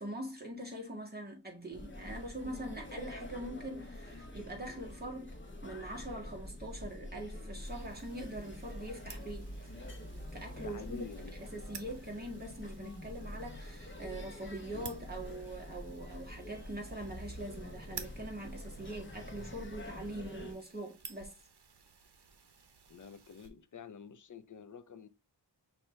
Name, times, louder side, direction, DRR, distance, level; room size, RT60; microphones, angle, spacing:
voice 1, 0.0-5.3 5.6-9.5 10.3-11.0 11.4-21.4, right 1 dB, 25° right, 1.7 m, -43 dB
sound 1, 1.7-20.5, left 1 dB, 30° left, 1.1 m, -46 dB
sound 2, 7.6-23.5, right 5 dB, 70° right, 0.9 m, -53 dB
voice 2, 10.6-11.3 22.9-25.1, left 6 dB, 50° left, 0.6 m, -48 dB
5.8 x 2.8 x 3.2 m
wide cardioid pair, 65°, 41 cm